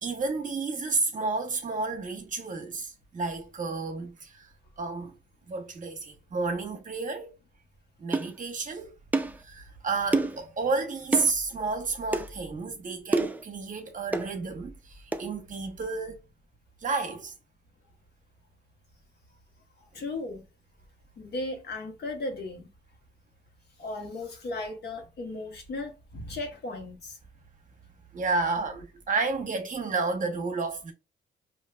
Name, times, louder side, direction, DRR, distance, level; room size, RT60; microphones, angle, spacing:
voice 1, 0.0-4.5 4.8-5.1 5.5-7.4 8.0-8.9 9.4-16.2 16.8-17.3 28.1-30.9, right 3 dB, 40° right, 1.1 m, -31 dB
sound 1, 8.1-8.3 9.1-9.4 10.1-10.4 11.1-11.3 12.1-12.3 13.1-13.4 14.1-14.3 15.1-15.3, right 3 dB, 10° right, 0.5 m, -27 dB
voice 2, 19.9-20.4 21.2-22.7 23.8-27.1, left 2 dB, 55° left, 1.3 m, -36 dB
5.0 x 2.7 x 2.3 m
cardioid pair, 90°, 20 cm